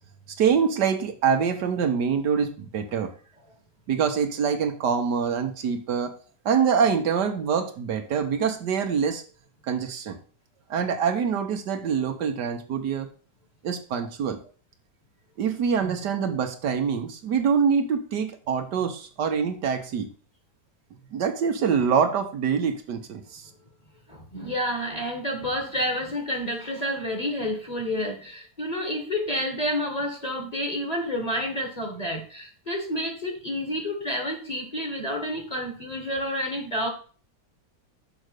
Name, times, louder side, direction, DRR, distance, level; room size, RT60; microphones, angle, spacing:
voice 1, 0.4-3.1 3.9-6.1 6.4-9.2 9.7-10.2 10.7-13.1 13.6-14.4 15.4-20.1 21.1-23.4, right 6 dB, 75° right, 6 dB, 1.6 m, -25 dB
voice 2, 24.3-36.9, equal, 25° left, 2 dB, 1.7 m, -29 dB
6.4 x 5.1 x 6.5 m, 0.40 s
omnidirectional pair, 1.8 m